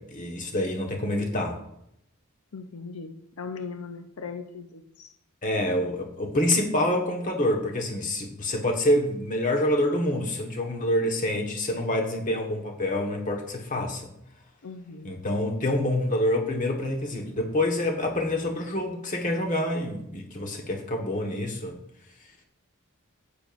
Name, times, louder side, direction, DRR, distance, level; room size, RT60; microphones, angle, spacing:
voice 1, 0.0-1.6 5.4-14.1 15.0-21.8, left 1 dB, 35° left, 2 dB, 1.4 m, -27 dB
voice 2, 2.5-5.1 14.6-15.2, left 5 dB, 80° left, 6 dB, 0.6 m, -39 dB
10.0 x 8.9 x 2.6 m, 0.77 s
head